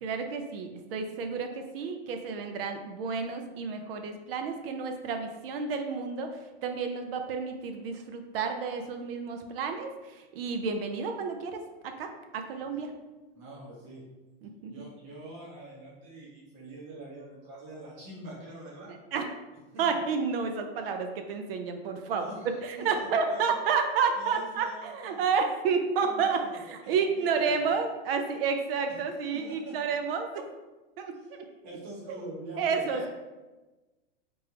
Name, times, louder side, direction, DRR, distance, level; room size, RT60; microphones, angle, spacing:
voice 1, 0.0-12.9 14.4-14.9 19.1-19.3 19.8-22.3 22.6-30.5 31.0-31.4 32.6-33.1, right 5 dB, 65° right, 5 dB, 0.6 m, -31 dB
voice 2, 13.3-14.0 14.7-18.9 19.7-19.8 22.0-23.6 24.1-25.3 26.0-27.3 27.5-27.6 29.1-29.8 31.2-33.1, right 2 dB, 45° right, -7 dB, 1.4 m, -45 dB
3.4 x 3.3 x 2.9 m, 1.1 s
supercardioid pair, 160°, 31 cm